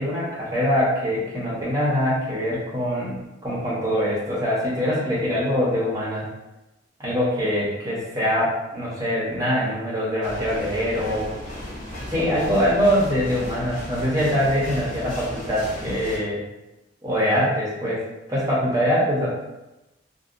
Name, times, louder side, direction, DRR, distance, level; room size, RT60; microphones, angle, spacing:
voice 1, 0.0-3.2 3.4-6.3 7.0-11.3 12.1-16.4 17.0-18.0 18.3-19.3, equal, 20° right, -7 dB, 0.7 m, -23 dB
sound 1, 10.2-16.2, left 1 dB, 40° left, 0.6 m, -35 dB
2.6 x 2.2 x 2.5 m, 1.0 s
head